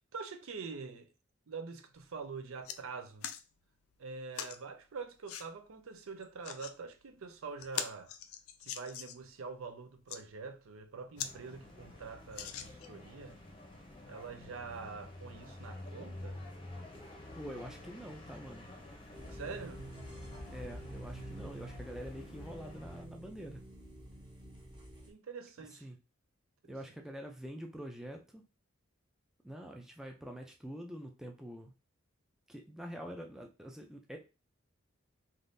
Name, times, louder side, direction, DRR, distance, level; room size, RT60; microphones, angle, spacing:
voice 1, 0.1-1.1 1.5-3.3 4.0-8.1 8.6-13.4 14.1-16.4 19.3-19.8 25.1-25.9 26.6-26.7, right 4 dB, 85° right, 0.5 m, -45 dB
sound 1, 2.0-2.1 2.4-2.8 3.2-3.4 4.3-4.6 5.3-5.5 6.2-6.7 7.2-7.3 7.6-9.3 9.9-10.2 10.8-10.9 11.2-11.3 11.7-11.8 12.3-13.0 13.7-13.8, left 9 dB, 90° left, 0.4 m, -41 dB
sound 2, 11.2-23.1, left 1 dB, 25° left, 0.7 m, -50 dB
voice 2, 17.3-18.7 20.5-23.6 25.8-26.0 26.7-28.4 29.4-31.7 32.5-34.2, equal, ahead, 0.3 m, -45 dB
sound 3, 19.1-25.1, right 1 dB, 20° right, 0.7 m, -48 dB
3.5 x 2.6 x 2.6 m
head